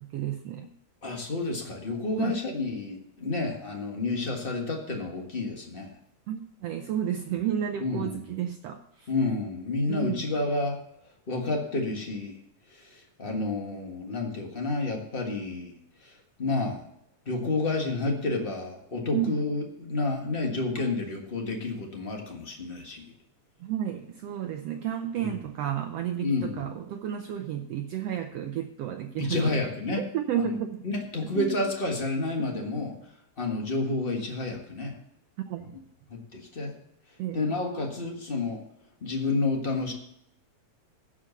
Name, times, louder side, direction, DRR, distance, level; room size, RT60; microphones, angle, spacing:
voice 1, 0.1-0.7 2.2-2.4 6.3-9.1 9.9-10.2 19.1-19.4 20.8-21.1 23.6-30.8 31.2-31.6 35.5-35.8 37.2-37.5, right 10 dB, 75° right, 6 dB, 1.4 m, -32 dB
voice 2, 1.0-6.0 7.8-8.2 9.1-10.8 11.3-12.3 12.7-15.7 16.0-16.1 16.4-16.8 17.2-23.1 25.2-25.3 26.2-26.7 29.2-30.0 30.4-30.5 30.8-32.9 33.4-34.9 36.1-36.7 37.3-38.6 39.0-39.9, left 3 dB, 35° left, 2 dB, 0.9 m, -30 dB
15.0 x 5.1 x 7.0 m, 0.75 s
omnidirectional pair, 3.5 m